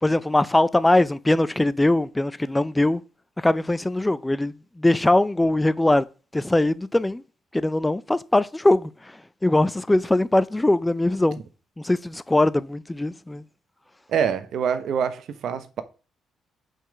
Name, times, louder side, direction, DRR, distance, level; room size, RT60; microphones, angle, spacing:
voice 1, 0.0-3.0 3.4-6.0 6.3-7.2 7.5-8.9 9.4-11.4 11.8-13.4, left 1 dB, 10° left, 0.4 m, -21 dB
voice 2, 14.1-15.8, right 7 dB, 70° right, 1.0 m, -25 dB
5.7 x 5.4 x 6.1 m
cardioid pair, 90°, 0 cm